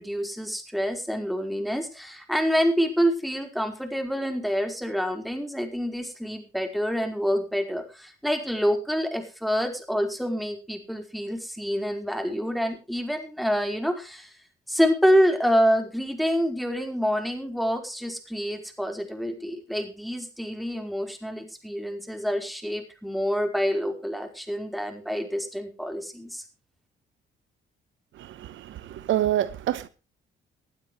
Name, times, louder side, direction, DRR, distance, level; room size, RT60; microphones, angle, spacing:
voice 1, 0.0-14.3 14.7-26.4, equal, ahead, 4.8 m, -27 dB
voice 2, 28.2-29.9, right 12 dB, 75° right, 1.1 m, -27 dB
20.0 x 12.0 x 3.3 m
cardioid pair, 90°, 20 cm